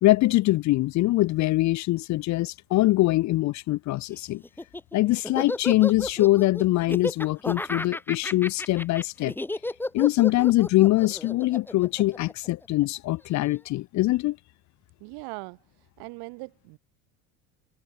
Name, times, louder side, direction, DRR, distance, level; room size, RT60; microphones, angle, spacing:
voice 1, 0.0-4.4 4.9-9.3 9.9-14.4, left 18 dB, 45° left, 0.5 m, -23 dB
Laughter, 4.4-12.9, left 2 dB, 5° left, 0.7 m, -33 dB
voice 2, 15.0-15.6 16.0-16.8, right 29 dB, 75° right, 1.4 m, -40 dB
supercardioid pair, 95°, 40 cm